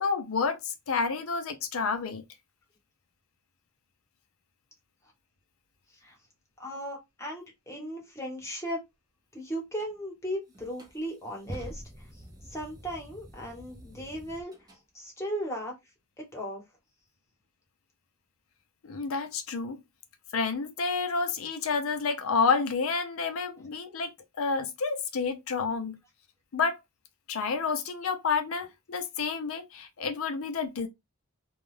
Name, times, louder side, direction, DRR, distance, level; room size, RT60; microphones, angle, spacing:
voice 1, 0.0-2.2 18.8-19.8 20.3-24.1 24.4-26.0 26.5-26.8 27.3-30.9, left 5 dB, 65° left, 0.5 m, -29 dB
voice 2, 6.6-8.8 9.3-14.5 14.9-15.7 16.2-16.6, equal, 15° left, 1.0 m, -37 dB
sound 1, 9.8-9.9 10.5-14.8, equal, 20° right, 0.6 m, -46 dB
2.3 x 2.2 x 3.1 m
head